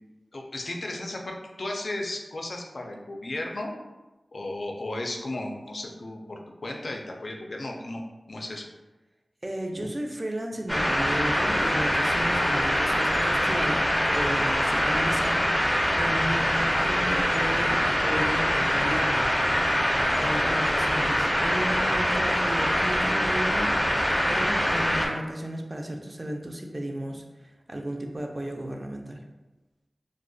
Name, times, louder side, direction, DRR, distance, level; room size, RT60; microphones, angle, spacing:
voice 1, 0.3-3.7 4.3-8.0 8.3-8.7, left 2 dB, 70° left, 1 dB, 0.3 m, -35 dB
voice 2, 9.4-29.2, right 1 dB, 35° right, 2 dB, 0.3 m, -34 dB
sound 1, 10.7-25.1, equal, 15° left, 0.5 m, -24 dB
2.3 x 2.1 x 2.6 m, 1.1 s
wide cardioid pair, 50°, 0 cm